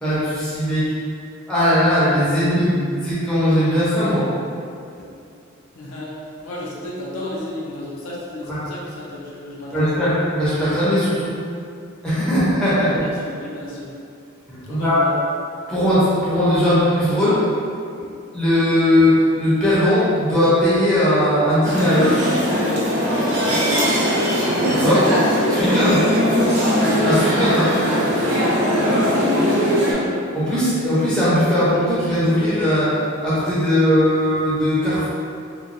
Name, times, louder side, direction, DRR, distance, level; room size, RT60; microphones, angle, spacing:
voice 1, 0.0-0.9 1.5-4.3 8.4-8.6 9.7-11.4 12.0-12.9 14.5-15.0 15.7-17.4 18.3-22.2 24.7-25.1 25.5-26.0 27.0-27.8 30.3-32.9 33.2-35.1, equal, 5° left, -12 dB, 0.7 m, -19 dB
voice 2, 5.7-9.9 12.7-13.9 14.6-15.1 23.8-24.1 25.7-26.6 29.0-30.1, left 2 dB, 80° left, -6 dB, 0.6 m, -31 dB
sound 1, 21.6-29.9, equal, 85° right, 0.7 m, -19 dB
3.0 x 2.3 x 2.5 m, 2.5 s
head